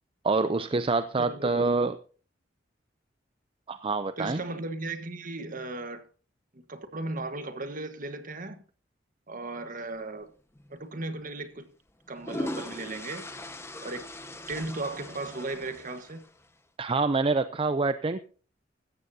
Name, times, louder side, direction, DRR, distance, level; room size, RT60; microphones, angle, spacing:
voice 1, 0.2-2.0 3.7-4.4 16.8-18.2, right 3 dB, 30° right, 0.5 m, -26 dB
voice 2, 1.2-1.7 4.2-6.1 6.5-8.6 9.3-10.3 10.7-11.7 12.1-13.2 13.8-14.1 14.5-16.2, right 2 dB, 45° right, 1.5 m, -36 dB
sound 1, 10.5-10.7 11.9-16.5, left 1 dB, 15° left, 1.3 m, -40 dB
15.5 x 14.0 x 2.8 m
head